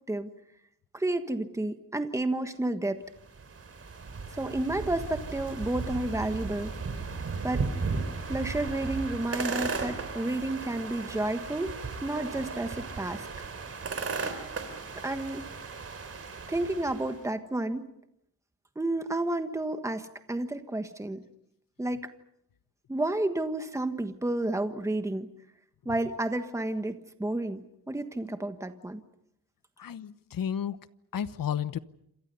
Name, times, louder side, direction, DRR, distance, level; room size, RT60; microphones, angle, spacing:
voice 1, 0.9-3.0 4.3-6.7 7.4-7.7 8.3-11.8 12.0-13.3 15.0-15.5 16.5-17.9 18.7-21.2 21.8-22.1 22.9-25.3 25.8-29.0, right 1 dB, 10° right, 1.4 m, -31 dB
sound 1, 3.2-17.2, right 4 dB, 40° right, 3.6 m, -36 dB
voice 2, 29.8-30.8 31.1-31.8, left 9 dB, 70° left, 1.1 m, -32 dB
28.0 x 27.0 x 5.6 m
wide cardioid pair, 165°, 36 cm